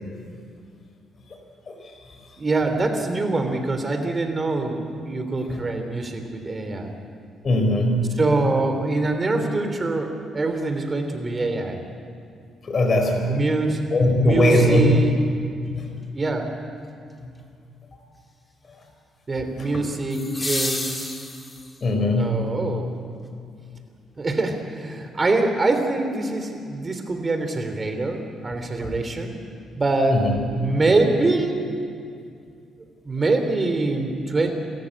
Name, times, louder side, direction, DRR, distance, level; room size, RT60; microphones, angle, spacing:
voice 1, 2.4-6.9 8.2-11.8 13.3-13.8 14.2-15.2 16.1-16.5 19.3-21.1 22.0-22.9 24.2-29.3 29.8-30.2 30.5-31.6 33.0-34.5, right 3 dB, 30° right, 6 dB, 3.2 m, -24 dB
voice 2, 7.4-8.2 12.7-13.3 13.9-14.8 15.7-16.0 19.6-19.7 21.8-22.5 28.8-28.9 30.1-30.4, left 1 dB, 40° left, 3 dB, 4.5 m, -20 dB
sound 1, 14.5-14.6 20.1-21.9 24.1-24.2, left 1 dB, 15° left, 2.4 m, -30 dB
28.0 x 14.0 x 8.7 m, 2.3 s
cardioid pair, 90°, 0 cm